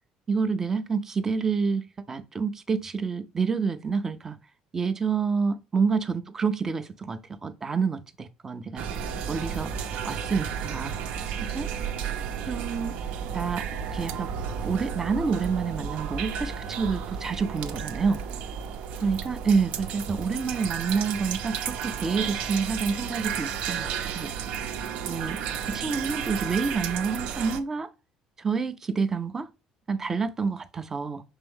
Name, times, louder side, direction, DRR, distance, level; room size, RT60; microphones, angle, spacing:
voice 1, 0.3-4.4 4.7-8.9 9.3-9.7 10.0-11.0 11.4-11.7 12.4-12.9 13.3-14.3 14.6-18.2 19.0-24.3 25.1-25.4 25.7-27.9 28.4-29.5 29.9-31.2, right 5 dB, 20° right, 0.5 m, -28 dB
sound 1, 8.8-27.6, right 7 dB, 70° right, 0.8 m, -33 dB
6.0 x 4.4 x 3.6 m
cardioid pair, 155°, 2 cm